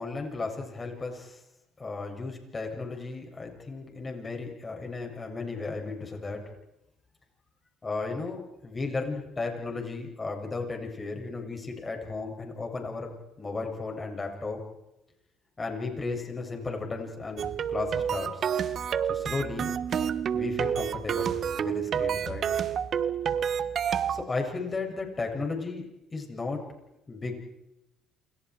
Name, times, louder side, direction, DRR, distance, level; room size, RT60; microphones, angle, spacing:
voice 1, 0.0-1.4 1.8-6.4 7.8-14.6 15.6-18.4 19.1-19.7 20.3-22.4 24.1-25.9 26.1-26.6 27.1-27.3, left 3 dB, 25° left, 2 dB, 7.7 m, -34 dB
sound 1, 17.4-24.2, right 8 dB, 50° right, 1.3 m, -29 dB
28.5 x 28.5 x 4.9 m, 0.91 s
cardioid pair, 95°, 0 cm